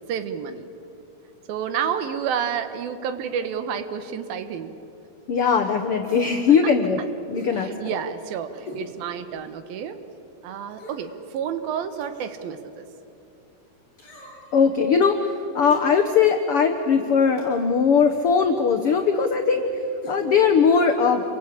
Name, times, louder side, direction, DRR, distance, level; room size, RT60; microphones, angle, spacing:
voice 1, 0.1-0.7 1.5-4.7 6.6-6.7 7.5-10.0 10.4-12.8, right 8 dB, 80° right, 10 dB, 3.1 m, -30 dB
voice 2, 5.3-7.0 7.3-7.7 14.5-19.7 20.1-21.2, left 6 dB, 75° left, 5 dB, 1.3 m, -20 dB
sound 1, 6.0-6.4 7.3-7.6 8.7-8.9 9.4-9.5 10.7-11.1 12.0-12.4 14.0-14.5 15.7-16.1 17.4-17.7 18.8-19.0 20.0-20.2 20.5-20.6, left 2 dB, 40° left, 9.0 m, -42 dB
28.0 x 23.5 x 8.5 m, 2.8 s
omnidirectional pair, 4.2 m